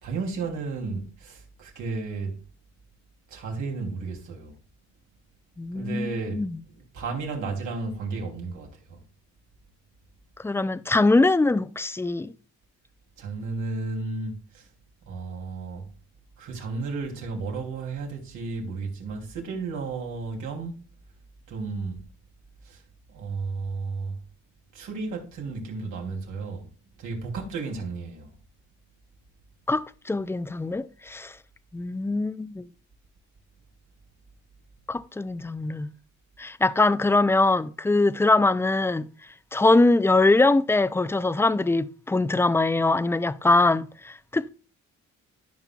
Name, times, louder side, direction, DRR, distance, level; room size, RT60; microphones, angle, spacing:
voice 1, 0.0-2.4 3.3-4.5 5.7-6.4 6.7-9.0 13.2-14.7 15.1-15.8 16.4-20.8 21.5-22.0 22.6-22.8 23.1-24.1 24.7-26.7 27.0-28.3, right 4 dB, 80° right, 2.9 m, -33 dB
voice 2, 5.6-6.6 10.4-12.3 29.7-31.3 31.7-32.7 34.9-35.9 36.4-39.1 39.5-44.5, left 2 dB, 10° left, 0.4 m, -22 dB
13.5 x 5.8 x 2.3 m
cardioid pair, 90°, 30 cm